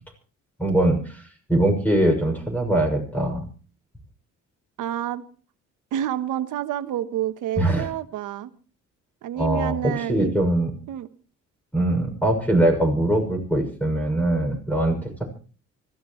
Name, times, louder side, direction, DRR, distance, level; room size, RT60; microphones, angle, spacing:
voice 1, 0.6-1.2 1.5-3.4 7.6-7.9 9.4-10.7 11.7-15.3, right 1 dB, 5° left, 4 dB, 6.5 m, -22 dB
voice 2, 4.8-5.2 5.9-8.5 9.2-10.3 10.9-11.1, right 11 dB, 85° right, 11 dB, 1.2 m, -28 dB
25.0 x 15.0 x 3.2 m, 0.38 s
cardioid pair, 90°, 30 cm